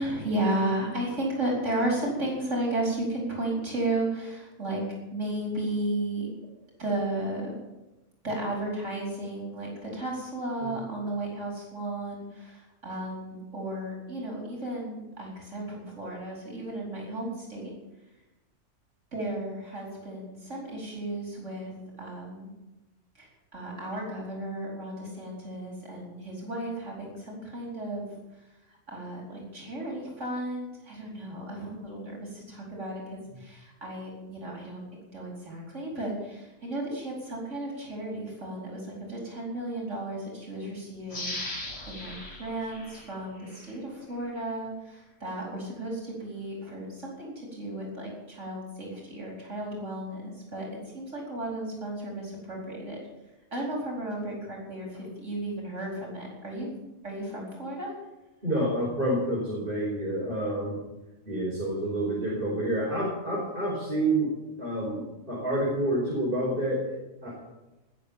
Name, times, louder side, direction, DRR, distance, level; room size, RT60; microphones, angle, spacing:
voice 1, 0.0-4.8 5.1-6.3 6.8-7.5 8.2-17.7 19.1-22.5 23.1-28.2 28.9-34.8 35.1-53.0 53.5-56.7 57.0-57.9, right 1 dB, 80° right, -2 dB, 4.9 m, -34 dB
sound 1, 41.1-43.8 44.2-44.3, left 2 dB, 60° left, 2.3 m, -39 dB
voice 2, 58.4-60.8 61.3-64.3 64.6-65.0 65.3-66.8 67.2-67.4, right 1 dB, 45° right, -6 dB, 5.5 m, -28 dB
20.0 x 6.7 x 8.9 m, 1.0 s
omnidirectional pair, 1.2 m